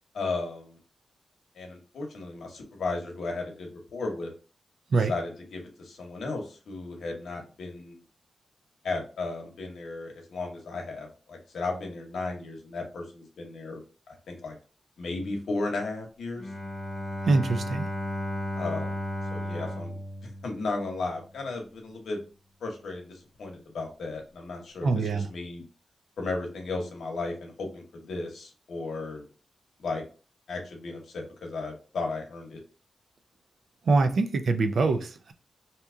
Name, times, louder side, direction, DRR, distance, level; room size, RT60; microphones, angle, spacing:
voice 1, 0.1-0.8 1.6-4.3 4.9-8.0 8.8-13.8 14.1-14.6 15.0-16.5 18.6-19.0 19.3-22.2 22.6-24.9 25.1-25.6 26.2-29.2 29.8-30.0 30.5-32.6, left 3 dB, 85° left, 0.9 m, -35 dB
Bowed string instrument, 16.4-21.2, left 1 dB, 25° left, 0.9 m, -34 dB
voice 2, 17.3-17.9 24.8-25.3 33.9-35.3, right 3 dB, 65° right, 0.4 m, -24 dB
2.8 x 2.3 x 3.6 m
wide cardioid pair, 115°, 0 cm